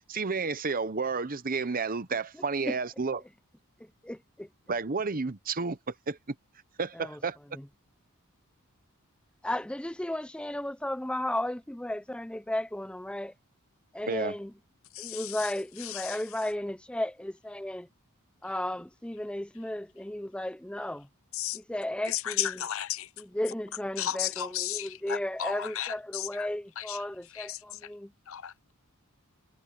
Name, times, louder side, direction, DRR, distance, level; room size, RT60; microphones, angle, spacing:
voice 1, 0.1-3.2 4.7-6.2 6.8-7.3 14.1-14.3, right 4 dB, 40° right, 0.9 m, -31 dB
voice 2, 4.0-4.5 7.0-7.2 7.5-7.6 9.4-13.3 13.9-14.5 15.0-17.9 18.4-21.1 21.5-22.6 23.2-28.1, left 1 dB, 5° left, 0.5 m, -34 dB
voice 3, 15.0-15.5 15.8-16.2 21.3-21.6 22.0-23.1 24.0-26.5 26.8-27.9 28.3-28.7, left 12 dB, 65° left, 0.7 m, -35 dB
head